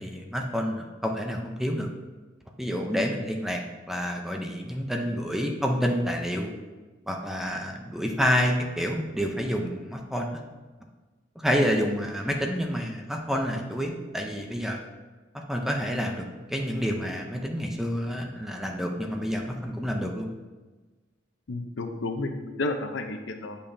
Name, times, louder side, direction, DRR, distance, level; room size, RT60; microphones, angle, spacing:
voice 1, 0.0-1.9 2.6-3.6 3.9-6.5 7.1-10.4 11.4-14.8 15.3-20.3, equal, ahead, 2 dB, 0.6 m, -28 dB
voice 2, 21.5-23.6, left 2 dB, 75° left, 6 dB, 0.6 m, -31 dB
8.5 x 5.5 x 2.7 m, 1.3 s
head